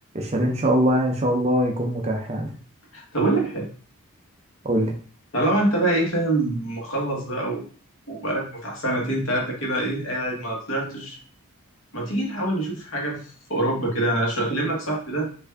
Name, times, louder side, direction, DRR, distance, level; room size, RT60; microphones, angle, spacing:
voice 1, 0.1-2.5 4.6-4.9, equal, 30° right, 2 dB, 0.5 m, -22 dB
voice 2, 2.9-3.7 5.3-7.6 8.1-11.2 11.9-15.3, right 1 dB, 60° left, -1 dB, 1.1 m, -25 dB
3.3 x 2.6 x 3.3 m, 0.42 s
head